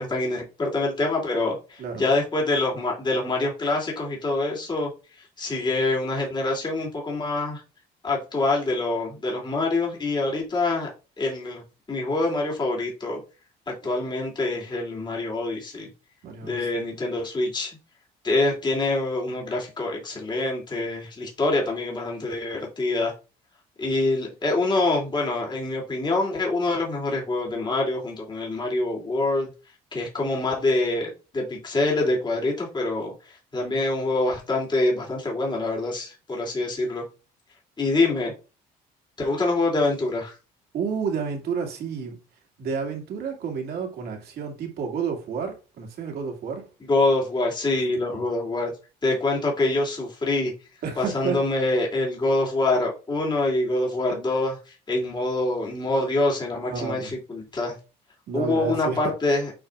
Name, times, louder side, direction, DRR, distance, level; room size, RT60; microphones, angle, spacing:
voice 1, 0.0-4.9 5.4-7.6 8.0-10.9 11.2-11.6 11.9-13.2 13.7-15.9 16.4-17.8 18.2-23.1 23.8-29.5 29.9-37.0 37.8-38.3 39.2-40.4 46.8-48.7 49.0-50.5 51.0-57.7 58.3-59.5, left 2 dB, 25° left, 2.8 m, -25 dB
voice 2, 16.2-16.9 40.7-42.2 42.6-46.6 48.1-48.3 50.8-51.4 54.1-54.2 56.7-57.1 58.3-59.1, right 6 dB, 65° right, 2.4 m, -30 dB
8.8 x 5.0 x 2.5 m
cardioid pair, 110°, 17 cm